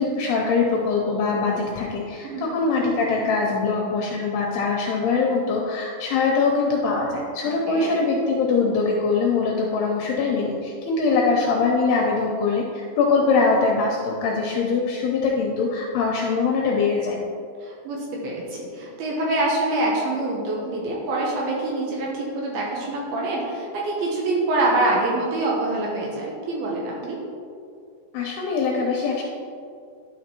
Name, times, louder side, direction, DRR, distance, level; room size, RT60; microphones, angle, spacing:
voice 1, 0.0-17.2 28.1-29.2, left 4 dB, 80° left, -1 dB, 2.5 m, -22 dB
voice 2, 2.2-2.6 7.7-7.9 17.6-27.2, right 2 dB, 75° right, -3 dB, 2.4 m, -25 dB
11.5 x 5.9 x 2.9 m, 2.4 s
omnidirectional pair, 5.3 m